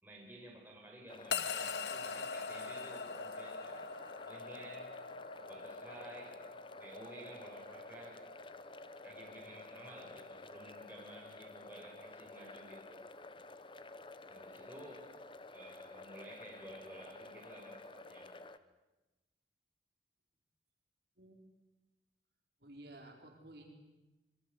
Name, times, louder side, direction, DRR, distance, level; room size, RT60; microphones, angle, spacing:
voice 1, 0.0-3.9 4.2-5.0 5.5-6.4 6.8-8.3 9.0-13.0 14.3-15.1 15.5-18.3, right 1 dB, 10° right, -1 dB, 5.5 m, -53 dB
sound 1, 1.1-18.6, left 2 dB, 30° left, 1.0 m, -52 dB
sound 2, 1.3-11.7, left 5 dB, 70° left, 1.2 m, -44 dB
voice 2, 22.6-23.7, right 1 dB, 65° right, 2 dB, 4.4 m, -54 dB
26.0 x 23.0 x 8.1 m, 1.1 s
head